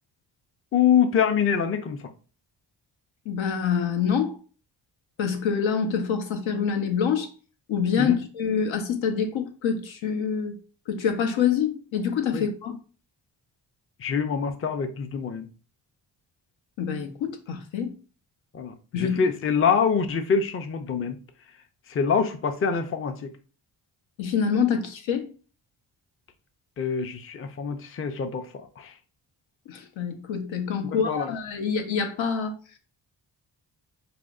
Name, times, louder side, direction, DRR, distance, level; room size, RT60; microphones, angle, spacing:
voice 1, 0.7-2.1 8.0-8.2 12.3-12.4 14.0-15.5 18.5-21.2 21.9-23.3 26.8-28.9 30.9-31.3, left 6 dB, 30° left, 0.5 m, -25 dB
voice 2, 3.2-4.4 5.2-7.3 7.7-10.6 10.9-12.8 16.8-17.9 18.9-19.2 24.2-25.3 29.7-32.6, left 7 dB, 80° left, 0.8 m, -26 dB
4.9 x 2.0 x 2.4 m
cardioid pair, 70°, 46 cm